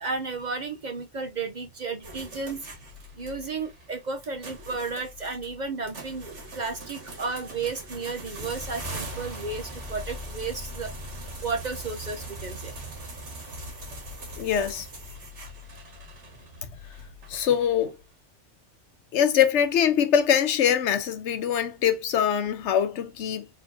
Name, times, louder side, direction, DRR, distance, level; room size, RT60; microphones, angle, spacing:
voice 1, 0.0-2.7 3.2-12.8, right 4 dB, 45° right, 0.7 m, -33 dB
sound 1, 2.0-18.0, right 1 dB, 80° right, 1.9 m, -40 dB
voice 2, 14.4-14.9 17.3-18.0 19.1-23.5, left 8 dB, 85° left, 1.0 m, -23 dB
4.5 x 3.6 x 2.7 m
omnidirectional pair, 1.2 m